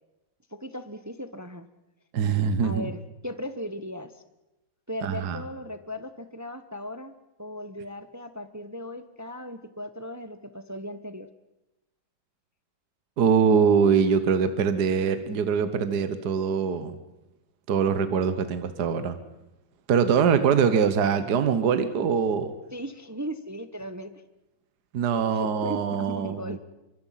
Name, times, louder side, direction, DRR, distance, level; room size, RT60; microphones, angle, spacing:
voice 1, 0.5-1.7 2.6-4.2 4.9-11.3 22.7-24.1 25.4-26.6, equal, 20° right, 11 dB, 0.4 m, -37 dB
voice 2, 2.1-2.9 5.0-5.4 13.2-17.0 17.7-19.2 19.9-22.5 24.9-26.6, right 6 dB, 60° right, 11 dB, 1.7 m, -23 dB
24.5 x 24.0 x 5.8 m, 0.97 s
omnidirectional pair, 2.1 m